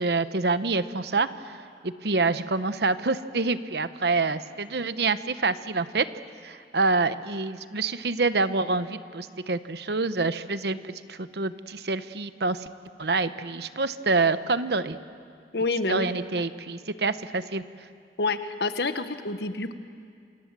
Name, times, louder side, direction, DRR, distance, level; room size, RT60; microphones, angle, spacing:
voice 1, 0.0-1.6 1.8-6.1 6.4-12.7 13.0-15.0 15.9-17.6, right 3 dB, 65° right, 12 dB, 1.0 m, -27 dB
voice 2, 15.5-16.1 18.2-19.7, left 3 dB, 65° left, 9 dB, 1.3 m, -27 dB
27.5 x 27.0 x 7.5 m, 2.3 s
head